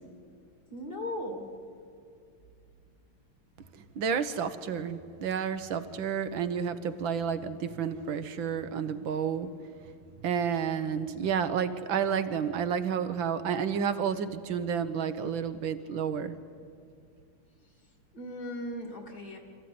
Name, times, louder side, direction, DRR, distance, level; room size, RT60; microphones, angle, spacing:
voice 1, 0.7-1.5 18.1-19.4, left 1 dB, 45° left, 2 dB, 3.4 m, -37 dB
voice 2, 3.7-9.5 10.2-16.4, right 7 dB, 65° right, 11 dB, 1.7 m, -30 dB
26.0 x 15.0 x 9.6 m, 2.4 s
omnidirectional pair, 2.4 m